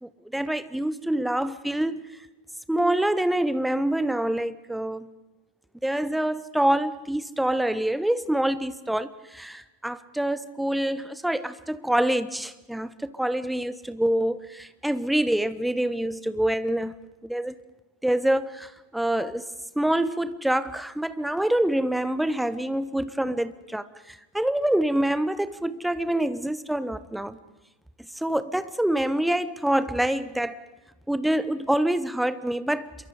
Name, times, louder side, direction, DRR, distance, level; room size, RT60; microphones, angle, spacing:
voice 1, 0.0-2.1 2.7-5.1 5.8-16.9 17.2-17.5 18.0-19.5 19.8-27.4 28.2-30.6 31.1-32.9, right 1 dB, 5° right, 14 dB, 1.0 m, -26 dB
27.0 x 23.0 x 5.0 m, 1.0 s
figure-of-eight pair, 90°, 0 cm